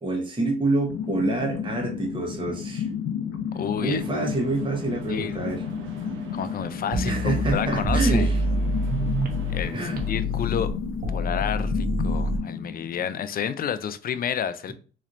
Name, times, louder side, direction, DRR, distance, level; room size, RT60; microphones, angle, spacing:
voice 1, 0.0-2.9 3.8-5.6 7.0-8.4 9.7-10.1, right 2 dB, 25° right, 1 dB, 1.1 m, -27 dB
sound 1, 0.9-13.6, left 7 dB, 85° left, 0.8 m, -32 dB
voice 2, 3.5-4.0 5.1-5.4 6.3-8.3 9.5-9.8 10.1-10.7 11.1-14.7, left 8 dB, 50° left, 12 dB, 0.5 m, -30 dB
sound 2, 3.9-10.2, right 6 dB, 80° right, 0.8 m, -44 dB
sound 3, 6.9-9.6 10.0-12.4, equal, 50° right, 0.9 m, -26 dB
4.0 x 3.2 x 2.5 m, 0.39 s
cardioid pair, 90°, 20 cm